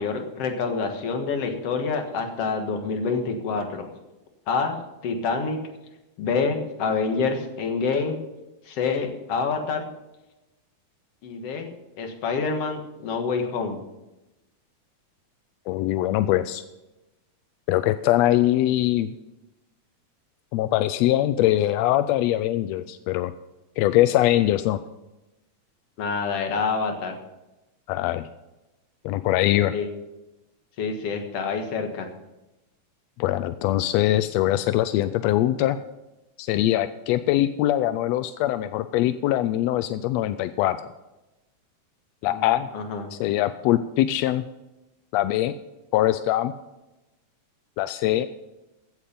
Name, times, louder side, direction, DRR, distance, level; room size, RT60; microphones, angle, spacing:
voice 1, 0.0-3.9 4.5-4.8 5.0-5.6 6.2-8.2 8.7-9.9 11.2-13.8 26.0-27.2 29.7-29.9 30.8-32.1 42.2-42.5 42.7-43.1, left 4 dB, 60° left, 4 dB, 2.4 m, -27 dB
voice 2, 15.7-16.6 17.7-19.1 20.5-23.3 23.8-24.8 27.9-28.3 29.0-29.7 33.2-35.8 36.4-40.8 42.2-42.7 43.1-44.4 45.1-45.5 45.9-46.5 47.8-48.3, left 14 dB, 80° left, 12 dB, 1.5 m, -22 dB
15.5 x 8.6 x 5.3 m, 0.99 s
omnidirectional pair, 3.4 m